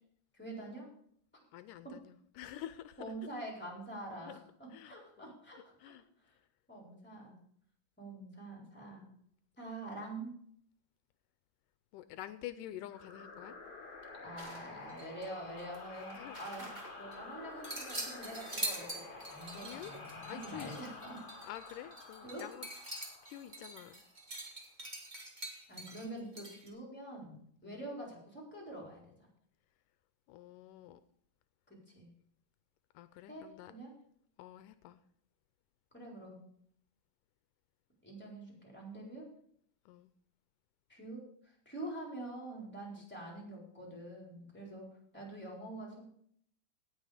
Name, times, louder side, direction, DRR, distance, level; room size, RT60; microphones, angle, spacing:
voice 1, 0.3-0.9 1.8-2.0 3.0-5.9 6.7-7.4 8.0-9.1 9.6-10.4 14.2-16.7 16.9-21.3 22.2-22.5 25.7-29.1 31.7-32.1 33.3-33.9 35.9-36.4 38.0-39.3 40.9-44.9 45.1-46.0, right 1 dB, 5° left, -1 dB, 3.7 m, -46 dB
voice 2, 1.5-3.0 4.2-4.4 4.7-5.3 5.8-6.0 11.9-13.6 16.1-16.4 19.6-19.9 20.3-20.8 21.4-22.7 23.2-24.0 27.6-27.8 30.3-31.0 33.0-33.7 34.4-35.0 39.9-40.1 43.0-43.1, left 12 dB, 85° left, 12 dB, 2.1 m, -48 dB
sound 1, 12.9-24.2, left 3 dB, 35° left, 2.0 m, -50 dB
sound 2, 14.4-15.3 15.6-17.2 17.6-26.7, right 1 dB, 20° right, 1.2 m, -44 dB
17.5 x 6.0 x 4.9 m, 0.64 s
omnidirectional pair, 3.7 m